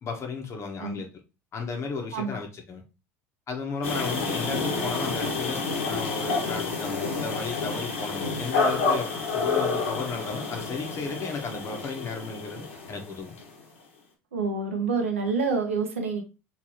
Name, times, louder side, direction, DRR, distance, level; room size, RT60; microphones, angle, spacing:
voice 1, 0.0-1.1 1.5-2.8 3.5-13.3, left 4 dB, 40° left, 3 dB, 1.2 m, -34 dB
sound 1, 3.8-13.5, left 4 dB, 85° left, 1.5 m, -29 dB
voice 2, 14.3-16.2, right 4 dB, 85° right, 4 dB, 0.9 m, -27 dB
4.9 x 3.3 x 3.0 m, 0.29 s
hypercardioid pair, 75°, 7 cm